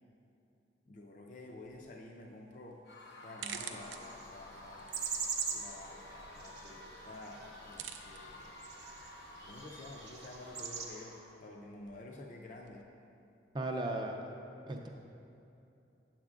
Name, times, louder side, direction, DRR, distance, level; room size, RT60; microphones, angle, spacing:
voice 1, 0.9-2.8 3.2-4.9 5.5-8.6 9.3-12.8, left 2 dB, 40° left, 0 dB, 0.4 m, -50 dB
sound 1, 1.6-12.8, right 8 dB, 85° right, 0.4 m, -52 dB
Screaming / Cheering / Crowd, 2.9-11.4, left 1 dB, 80° left, 0.8 m, -52 dB
sound 2, 3.8-10.9, right 6 dB, 60° right, 0.8 m, -43 dB
voice 2, 13.5-14.2 14.7-14.9, right 2 dB, 25° right, 2 dB, 0.4 m, -36 dB
9.0 x 7.4 x 2.4 m, 2.7 s
head